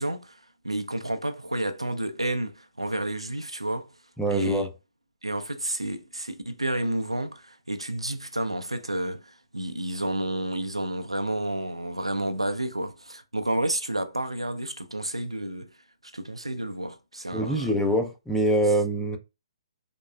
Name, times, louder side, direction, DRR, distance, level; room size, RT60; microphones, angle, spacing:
voice 1, 0.0-3.9 4.3-4.7 5.2-15.7 16.1-17.7, right 1 dB, 85° right, 0.5 m, -30 dB
voice 2, 4.2-4.7 17.3-19.2, right 1 dB, ahead, 0.5 m, -24 dB
3.6 x 3.0 x 2.2 m
figure-of-eight pair, 125°, 3 cm